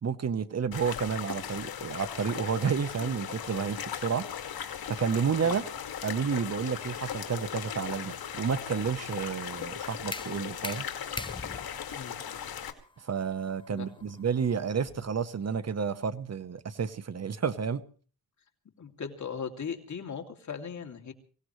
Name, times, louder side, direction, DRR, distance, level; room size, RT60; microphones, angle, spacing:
voice 1, 0.0-4.2 4.9-5.6 6.0-10.9 13.0-17.8, right 6 dB, 45° right, 1.1 m, -30 dB
sound 1, 0.7-12.7, left 8 dB, 75° left, 2.3 m, -38 dB
sound 2, 9.6-15.2, left 3 dB, 15° left, 0.7 m, -43 dB
voice 2, 18.8-21.1, left 6 dB, 50° left, 2.8 m, -38 dB
24.0 x 18.0 x 3.2 m
cardioid pair, 90°, 36 cm